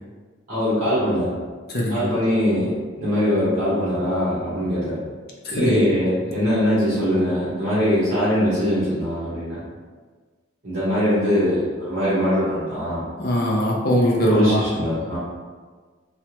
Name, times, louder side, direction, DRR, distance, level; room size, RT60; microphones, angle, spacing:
voice 1, 0.5-1.3 1.9-2.7 3.0-5.0 5.5-9.6 10.6-13.0 14.3-15.2, equal, 45° right, -11 dB, 1.0 m, -22 dB
voice 2, 1.7-2.1 5.4-5.8 13.2-14.7, equal, 55° left, -3 dB, 0.5 m, -21 dB
3.3 x 2.1 x 2.9 m, 1.4 s
head